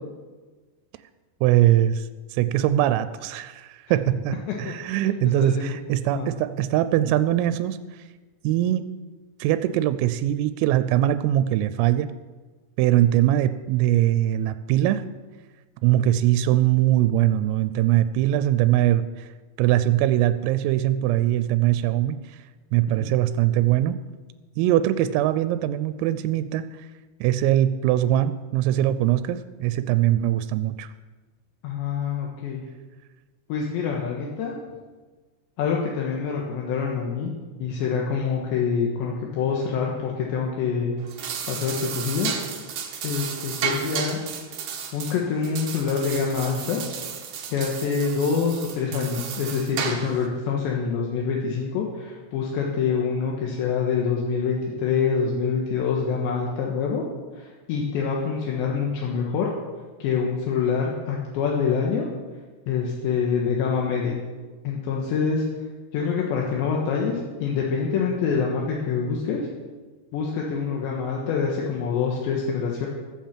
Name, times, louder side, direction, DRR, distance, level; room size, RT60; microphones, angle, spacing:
voice 1, 1.4-7.8 8.4-8.9 9.4-12.1 12.8-15.1 15.8-19.3 19.6-22.4 22.7-24.0 24.6-26.7 27.2-30.9, right 13 dB, 90° right, 12 dB, 3.2 m, -22 dB
voice 2, 4.7-5.0 5.4-5.8 6.1-6.3 23.0-23.1 31.6-32.6 33.5-34.6 35.6-37.3 37.6-41.0 41.5-42.3 43.0-44.2 44.9-46.8 47.5-57.0 57.4-59.5 60.0-62.1 62.7-64.2 64.6-65.4 65.9-69.4 70.1-72.9, left 6 dB, 70° left, -2 dB, 3.3 m, -26 dB
sound 1, 41.0-50.3, right 7 dB, 70° right, 2.1 m, -33 dB
15.0 x 7.3 x 7.4 m, 1.3 s
omnidirectional pair, 5.9 m